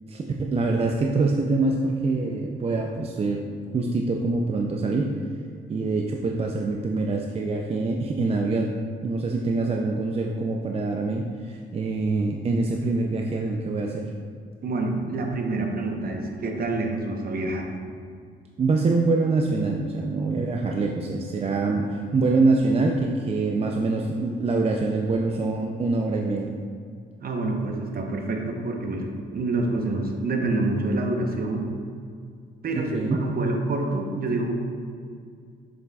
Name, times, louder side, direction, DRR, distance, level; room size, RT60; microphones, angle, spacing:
voice 1, 0.1-3.4 3.7-5.2 5.7-8.7 9.0-14.1 18.6-26.6 32.8-33.2, right 3 dB, 30° right, 1 dB, 0.5 m, -25 dB
voice 2, 14.6-17.7 27.2-29.1 29.3-31.7 32.6-34.5, right 2 dB, 50° right, 2 dB, 1.0 m, -27 dB
6.8 x 6.6 x 2.4 m, 2.3 s
cardioid pair, 90°, 20 cm